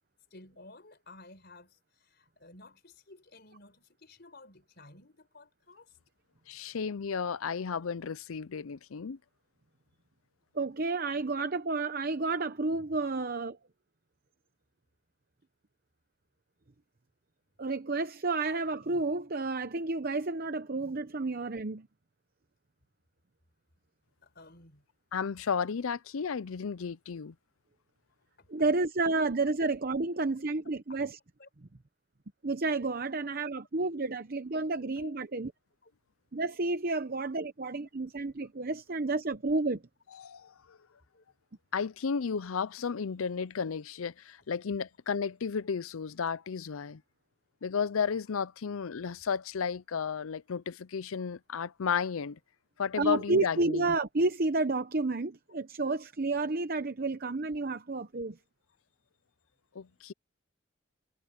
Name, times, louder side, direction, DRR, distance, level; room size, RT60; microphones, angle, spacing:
voice 1, 0.3-5.9 24.2-24.8 28.4-28.5 30.9-31.0 31.4-31.5 35.0-35.2 35.8-35.9 36.9-37.0 41.1-41.2, left 2 dB, 50° left, 4.7 m, -54 dB
voice 2, 6.5-9.2 25.1-27.3 40.2-40.8 41.7-47.0 47.6-52.4 52.8-53.9 59.7-60.1, left 6 dB, 80° left, 0.5 m, -33 dB
voice 3, 10.5-13.6 17.6-21.9 28.5-31.2 32.4-35.5 36.3-39.8 53.0-58.4, right 3 dB, 45° right, 0.8 m, -31 dB
head